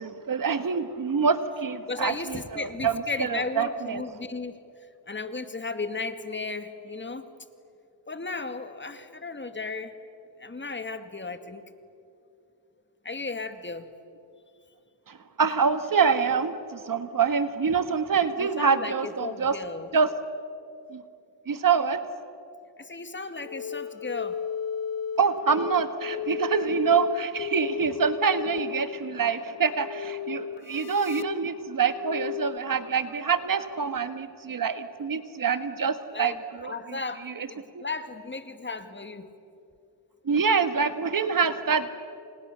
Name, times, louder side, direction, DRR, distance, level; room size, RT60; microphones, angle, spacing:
voice 1, 0.0-4.0 15.1-19.5 19.9-20.1 20.9-21.0 21.5-22.0 25.2-36.3 36.6-36.7 37.3-37.5 37.7-37.8 40.2-41.9, right 6 dB, 50° right, 10 dB, 1.7 m, -26 dB
voice 2, 1.9-4.6 5.1-7.3 8.1-9.9 10.4-11.6 13.0-13.9 18.4-19.9 22.8-24.4 30.5-30.8 36.1-36.4 36.6-39.3, left 3 dB, 25° left, 9 dB, 2.2 m, -35 dB
sound 1, 23.4-32.6, left 7 dB, 55° left, 1.1 m, -34 dB
30.0 x 27.5 x 6.9 m, 2.6 s
cardioid pair, 85°, 43 cm